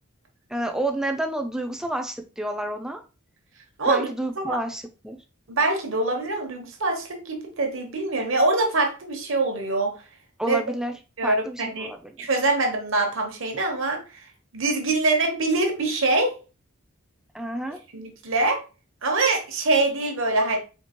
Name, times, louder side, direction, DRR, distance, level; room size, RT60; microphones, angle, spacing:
voice 1, 0.5-3.0 3.9-5.2 10.4-10.9 11.2-12.3 17.3-17.8, right 1 dB, 5° right, 5 dB, 0.4 m, -29 dB
voice 2, 5.5-10.0 10.4-10.6 11.2-11.9 12.2-14.0 14.5-16.4 17.9-18.6 19.0-20.6, right 2 dB, 65° right, 2 dB, 1.0 m, -24 dB
4.4 x 2.8 x 2.9 m, 0.32 s
head